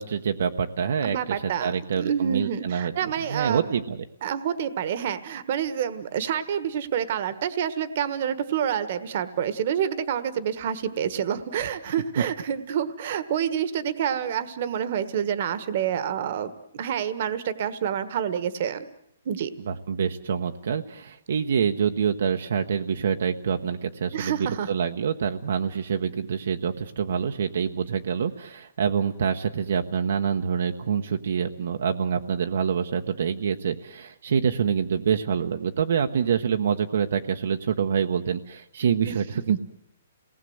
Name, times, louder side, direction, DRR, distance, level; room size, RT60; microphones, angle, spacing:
voice 1, 0.0-4.0 12.2-12.3 19.7-39.6, right 7 dB, 60° right, 6 dB, 1.1 m, -26 dB
voice 2, 1.0-3.7 4.2-18.8 19.2-19.5 24.1-24.7 39.1-39.2 39.5-39.6, right 9 dB, 40° right, 13 dB, 1.4 m, -28 dB
28.5 x 19.0 x 7.9 m, 0.79 s
hypercardioid pair, 170°, 0 cm